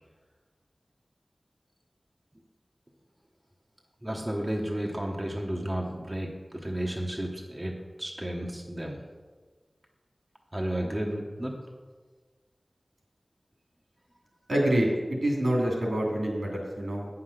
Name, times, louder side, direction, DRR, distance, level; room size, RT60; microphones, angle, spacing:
voice 1, 4.0-9.0 10.5-11.5, right 1 dB, 25° right, -1 dB, 1.1 m, -32 dB
voice 2, 14.5-17.1, right 1 dB, 75° right, -1 dB, 2.9 m, -26 dB
8.6 x 5.8 x 6.7 m, 1.4 s
wide cardioid pair, 45°, 0 cm